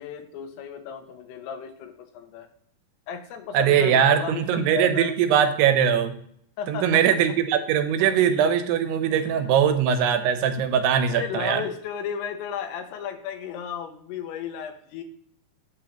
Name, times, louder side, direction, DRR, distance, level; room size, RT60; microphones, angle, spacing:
voice 1, 0.0-2.5 3.1-5.1 6.6-7.4 9.1-9.4 11.1-15.0, left 8 dB, 85° left, 7 dB, 3.0 m, -34 dB
voice 2, 3.5-6.1 6.7-11.6, right 8 dB, 85° right, 8 dB, 2.9 m, -21 dB
8.9 x 7.3 x 2.9 m, 0.66 s
omnidirectional pair, 4.6 m